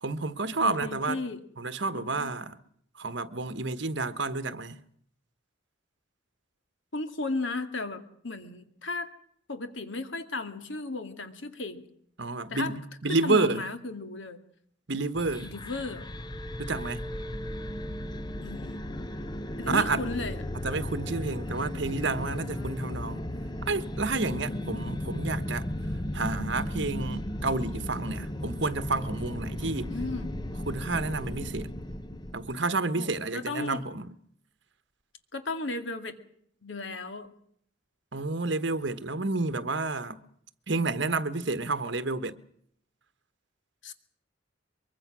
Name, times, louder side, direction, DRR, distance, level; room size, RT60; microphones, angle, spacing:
voice 1, 0.0-1.2 1.6-2.6 2.9-4.8 12.2-13.7 14.9-15.5 16.6-17.1 19.7-20.1 20.6-23.2 23.7-25.7 26.1-29.9 30.7-31.8 32.3-34.1 38.1-40.2 40.7-42.4, right 3 dB, 60° right, 1.3 m, -30 dB
voice 2, 0.6-1.4 1.9-2.3 6.9-9.1 9.5-11.9 12.5-12.7 13.2-14.4 15.4-16.0 18.4-18.8 19.6-20.4 22.4-22.8 24.5-25.0 29.8-30.3 32.9-33.8 35.3-36.2 36.6-37.3 43.8-43.9, left 3 dB, 65° left, 2.2 m, -35 dB
sound 1, 15.1-32.6, left 1 dB, 20° left, 0.9 m, -35 dB
23.5 x 23.0 x 6.2 m
head